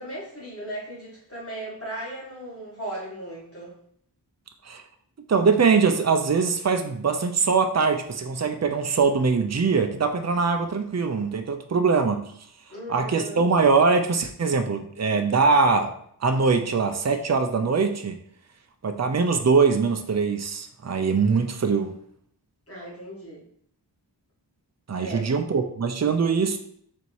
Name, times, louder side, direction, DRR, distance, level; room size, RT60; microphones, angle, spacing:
voice 1, 0.0-3.7 12.7-13.4 22.7-23.4 25.0-25.3, right 1 dB, 35° left, -6 dB, 1.9 m, -37 dB
voice 2, 5.3-12.2 12.9-15.9 16.2-18.2 18.8-21.9 24.9-26.6, right 4 dB, 40° right, 7 dB, 0.6 m, -22 dB
4.1 x 2.7 x 4.7 m, 0.64 s
wide cardioid pair, 45°, 41 cm